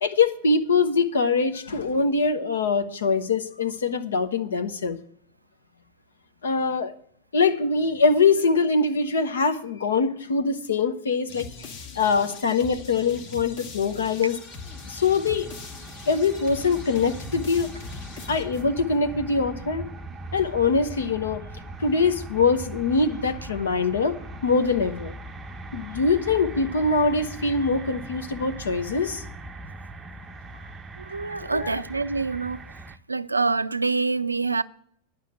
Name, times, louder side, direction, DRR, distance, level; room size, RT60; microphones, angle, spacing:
voice 1, 0.0-5.0 6.4-6.9 7.3-11.5 12.0-14.4 14.9-15.5 16.1-17.7 18.3-19.9 20.3-21.4 21.8-25.1 25.7-29.2 31.5-31.8, left 4 dB, 65° left, 1.0 m, -23 dB
sound 1, 11.3-18.9, left 4 dB, 50° left, 1.9 m, -41 dB
sound 2, 14.2-33.0, right 2 dB, 15° right, 0.6 m, -40 dB
voice 2, 31.0-32.6 33.1-34.6, right 4 dB, 80° right, 0.4 m, -26 dB
10.5 x 6.2 x 8.5 m
figure-of-eight pair, 90°, 0 cm